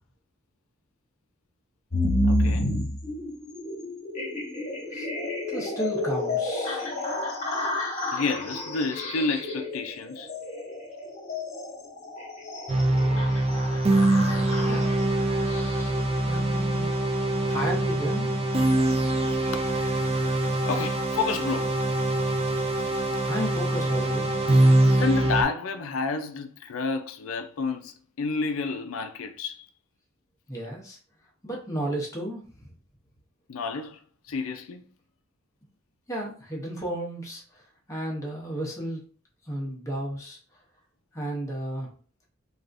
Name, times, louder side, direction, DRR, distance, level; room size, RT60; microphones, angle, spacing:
sound 1, 1.9-16.0, left 1 dB, 35° left, 1.2 m, -30 dB
voice 1, 2.2-2.7 8.1-10.3 19.5-19.6 20.7-21.9 24.6-29.7 33.5-34.0 34.3-34.9, left 4 dB, 75° left, 0.5 m, -30 dB
voice 2, 5.5-6.9 14.7-15.0 16.3-17.0 17.4-18.3 23.2-24.4 30.5-31.0 31.4-32.4 36.1-37.4 37.9-39.0 39.5-40.4 41.1-41.9, right 1 dB, 15° left, 0.7 m, -33 dB
sound 2, 12.7-25.4, right 1 dB, 30° right, 0.5 m, -24 dB
3.4 x 2.4 x 2.5 m
head